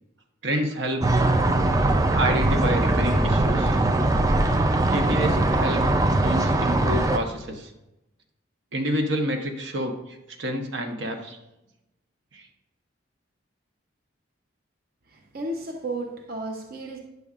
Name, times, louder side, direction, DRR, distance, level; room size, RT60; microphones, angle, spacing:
voice 1, 0.4-1.1 2.1-3.8 4.9-7.7 8.7-11.4 12.3-12.5, right 1 dB, 75° right, 1.0 m, -28 dB
sound 1, 1.0-7.2, right 2 dB, 20° right, 0.4 m, -21 dB
voice 2, 15.1-17.0, right 2 dB, 50° right, 0.7 m, -33 dB
9.3 x 6.9 x 2.4 m
head